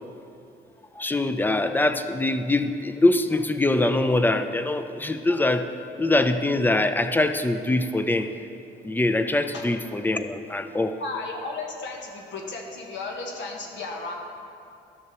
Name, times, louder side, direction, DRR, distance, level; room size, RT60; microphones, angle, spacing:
voice 1, 1.0-5.7 6.0-8.3 8.8-11.0, left 2 dB, 10° left, 9 dB, 0.4 m, -23 dB
voice 2, 11.0-14.1, left 3 dB, 65° left, 1 dB, 1.4 m, -34 dB
12.0 x 6.5 x 3.0 m, 2.7 s
cardioid pair, 90°, 20 cm